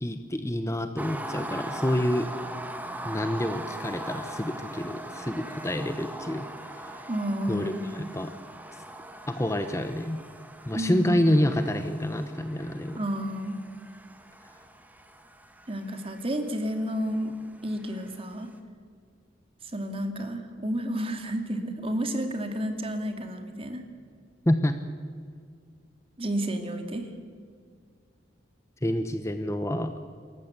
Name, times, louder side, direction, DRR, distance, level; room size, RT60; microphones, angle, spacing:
voice 1, 0.0-2.3 3.0-6.5 7.5-8.3 9.3-10.2 10.7-13.0 24.5-24.8 28.8-29.9, left 1 dB, 15° left, 8 dB, 0.9 m, -27 dB
sound 1, 1.0-18.2, right 1 dB, 10° right, 1.4 m, -41 dB
voice 2, 7.1-7.9 10.7-11.2 13.0-13.6 15.7-17.3 17.6-18.5 19.6-23.8 26.2-27.1, equal, 30° right, 6 dB, 2.3 m, -31 dB
27.5 x 14.5 x 8.2 m, 2.1 s
head